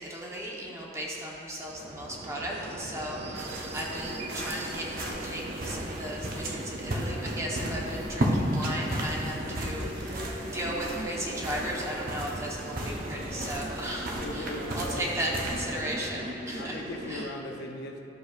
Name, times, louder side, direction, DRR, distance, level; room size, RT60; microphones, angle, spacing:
voice 1, 0.0-9.9 10.5-14.5 14.7-16.8 17.1-17.3, right 1 dB, 15° right, -4 dB, 1.1 m, -36 dB
sound 1, 1.6-17.2, right 1 dB, 35° right, 0.5 m, -39 dB
sound 2, 3.4-16.1, equal, 55° right, 0.9 m, -35 dB
voice 2, 9.5-10.0 14.2-15.1 15.7-15.9 16.6-18.0, left 2 dB, 60° left, 2 dB, 0.6 m, -39 dB
12.5 x 6.7 x 2.5 m, 2.9 s
head